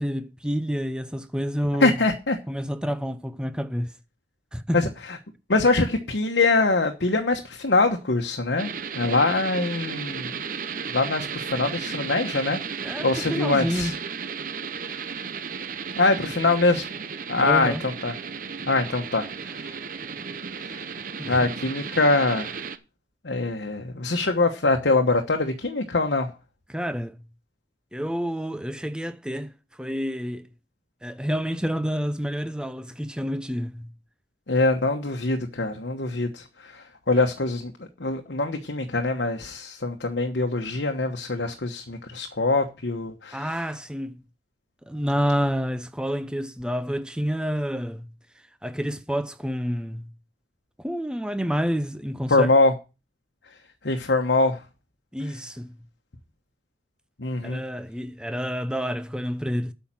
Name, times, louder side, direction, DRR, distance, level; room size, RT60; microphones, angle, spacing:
voice 1, 0.0-2.0 2.5-3.9 4.5-4.8 12.8-13.9 17.4-17.8 21.2-21.3 26.7-27.2 27.9-29.5 29.8-30.5 31.0-33.9 43.3-44.2 44.9-48.1 48.6-50.1 50.8-52.5 55.1-55.8 57.4-59.7, equal, 5° right, 0.6 m, -28 dB
voice 2, 1.8-2.4 4.7-4.9 5.5-8.7 9.0-10.4 10.9-12.6 13.0-13.9 16.0-16.9 17.3-18.1 18.7-19.7 20.5-20.8 21.2-22.6 23.2-26.3 34.5-43.6 52.3-52.7 53.8-54.6 57.2-57.6, left 3 dB, 75° left, 1.2 m, -23 dB
sound 1, 8.6-22.8, right 6 dB, 45° right, 0.7 m, -34 dB
8.7 x 5.8 x 7.4 m
head